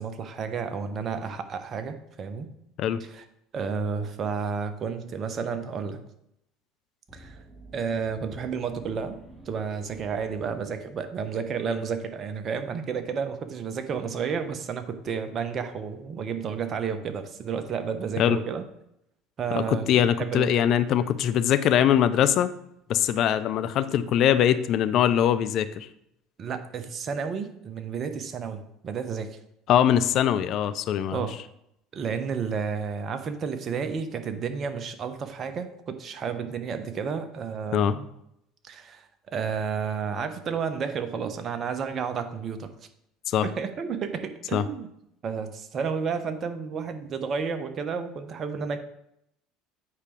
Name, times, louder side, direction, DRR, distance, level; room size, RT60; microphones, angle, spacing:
voice 1, 0.0-2.5 3.1-3.2 3.5-6.0 7.1-7.4 7.7-9.2 9.5-18.6 19.4-20.5 26.4-29.4 31.1-31.4 31.9-38.1 38.6-42.7 43.4-44.9 45.2-48.8, right 6 dB, 40° right, 9 dB, 0.9 m, -31 dB
sound 1, 7.1-11.3, right 1 dB, 15° right, 1.6 m, -50 dB
voice 2, 19.5-22.5 22.9-25.9 29.7-31.3 37.7-37.9 43.3-43.5 44.5-44.6, left 10 dB, 55° left, 12 dB, 0.5 m, -22 dB
8.7 x 4.8 x 3.2 m, 0.77 s
hypercardioid pair, 70°, 0 cm